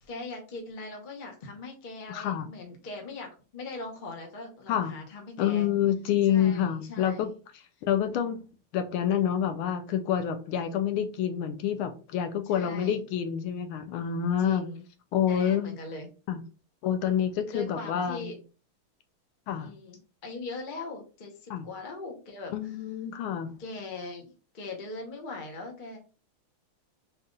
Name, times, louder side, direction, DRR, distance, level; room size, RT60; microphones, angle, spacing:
voice 1, 0.0-5.7 6.3-7.2 12.4-13.0 14.4-14.8 15.3-16.1 17.5-18.4 19.6-22.8 23.6-24.2 24.5-26.0, left 3 dB, 40° left, 2 dB, 0.7 m, -40 dB
voice 2, 2.1-2.4 4.7-5.0 5.4-7.3 7.8-8.4 8.7-14.7 15.1-15.8 16.3-16.4 16.8-18.3 19.5-19.7 21.5-21.6 22.5-23.5, left 9 dB, 85° left, 8 dB, 1.5 m, -27 dB
4.2 x 2.4 x 3.7 m, 0.35 s
omnidirectional pair, 2.3 m